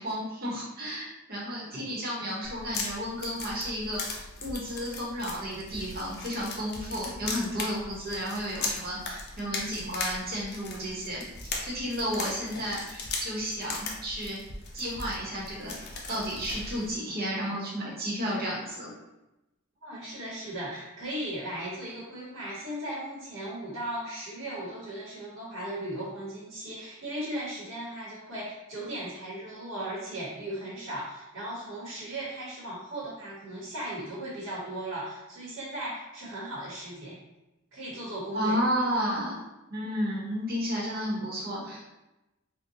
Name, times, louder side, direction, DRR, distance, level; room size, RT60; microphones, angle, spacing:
voice 1, 0.0-11.2 11.6-14.4 14.7-18.9 38.3-39.4 39.7-41.8, equal, 45° right, -5 dB, 1.0 m, -32 dB
sound 1, 2.4-16.9, left 3 dB, 50° left, 0.5 m, -38 dB
voice 2, 19.8-37.2 37.7-38.6, right 1 dB, 75° right, -7 dB, 1.1 m, -37 dB
3.7 x 2.2 x 2.7 m, 0.97 s
head